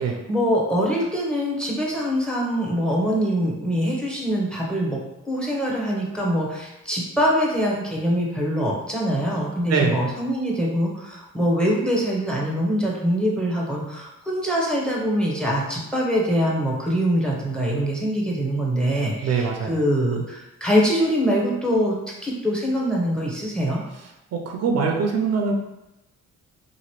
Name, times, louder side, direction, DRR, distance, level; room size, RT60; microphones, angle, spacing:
voice 1, 0.0-5.0 5.2-22.0 22.2-23.8, equal, 5° left, -2 dB, 0.8 m, -23 dB
voice 2, 19.2-19.7 24.3-25.5, right 5 dB, 55° right, 2 dB, 0.5 m, -23 dB
2.9 x 2.6 x 2.9 m, 0.95 s
cardioid pair, 90°, 30 cm